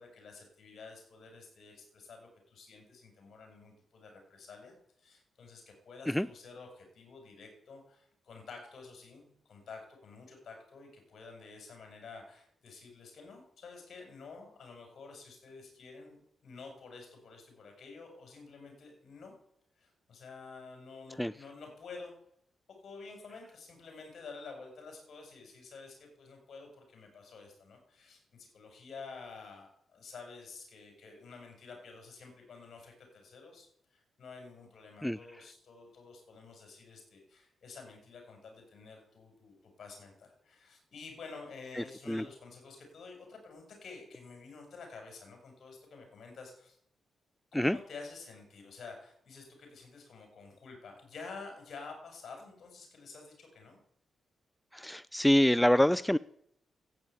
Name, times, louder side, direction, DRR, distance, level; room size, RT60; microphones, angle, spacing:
voice 1, 0.0-19.3 19.8-22.1 22.8-46.8 47.5-53.8, left 4 dB, 60° left, 3 dB, 6.4 m, -50 dB
voice 2, 41.7-42.2 47.5-47.8 54.7-56.2, left 1 dB, 5° left, 18 dB, 0.5 m, -26 dB
13.5 x 9.1 x 8.5 m, 0.71 s
supercardioid pair, 55°, 0 cm